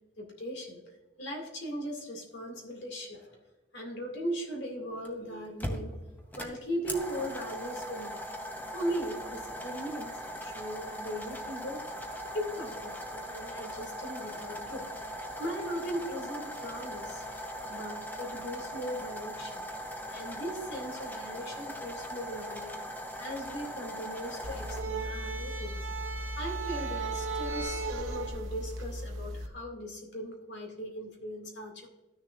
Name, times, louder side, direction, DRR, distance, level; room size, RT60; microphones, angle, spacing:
voice 1, 0.2-0.8 1.2-3.4 3.7-8.2 8.7-11.8 12.3-14.9 15.4-17.3 17.7-19.6 20.1-22.8 23.2-25.8 26.4-31.9, equal, 60° left, 1 dB, 2.2 m, -38 dB
sound 1, 5.1-5.2 5.6-24.8, equal, 10° left, 0.8 m, -40 dB
Trumpet, 11.8-19.2, right 2 dB, 30° right, 2.3 m, -52 dB
sound 2, 24.4-29.5, right 2 dB, 85° right, 0.8 m, -35 dB
13.0 x 6.7 x 2.5 m, 1.1 s
head